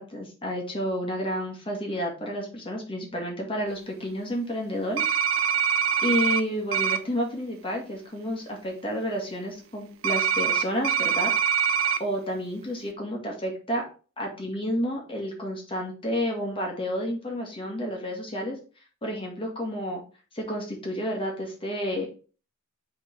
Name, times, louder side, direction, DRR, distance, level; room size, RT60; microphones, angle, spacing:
voice 1, 0.0-5.0 6.0-11.7 12.0-13.8 14.2-18.6 19.0-20.0 20.3-22.1, equal, 25° left, 0 dB, 1.8 m, -30 dB
sound 1, 5.0-6.4 6.7-7.0 10.0-12.0, right 7 dB, 80° right, 0.6 m, -24 dB
5.5 x 3.7 x 5.2 m, 0.37 s
head